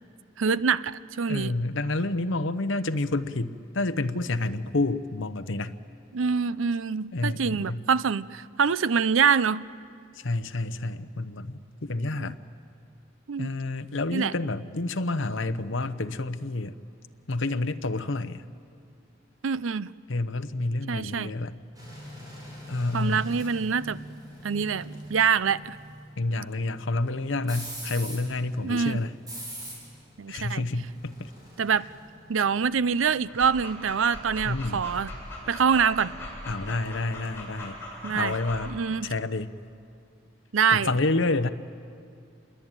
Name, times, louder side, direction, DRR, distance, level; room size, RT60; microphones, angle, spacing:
voice 1, 0.4-1.5 6.1-9.6 12.2-12.3 13.3-13.5 14.1-14.3 19.4-19.9 20.9-21.3 22.9-24.0 24.4-25.8 28.6-29.0 30.2-30.6 31.6-31.9 32.3-35.1 35.5-36.1 38.0-38.4 38.7-39.1 40.5-40.9, right 6 dB, 85° right, 17 dB, 0.6 m, -25 dB
voice 2, 1.3-5.7 7.1-7.8 10.1-12.4 13.4-16.7 17.3-18.4 20.1-21.5 22.7-23.2 26.2-29.1 30.3-31.3 34.4-34.9 36.4-37.8 38.1-38.7 39.0-39.5 40.7-41.5, left 2 dB, 75° left, 11 dB, 0.9 m, -29 dB
sound 1, 21.7-34.9 35.3-35.5, equal, 20° right, 7.8 m, -44 dB
Dog, 33.2-38.7, left 1 dB, 10° left, 7.8 m, -40 dB
27.5 x 22.0 x 9.0 m, 2.4 s
head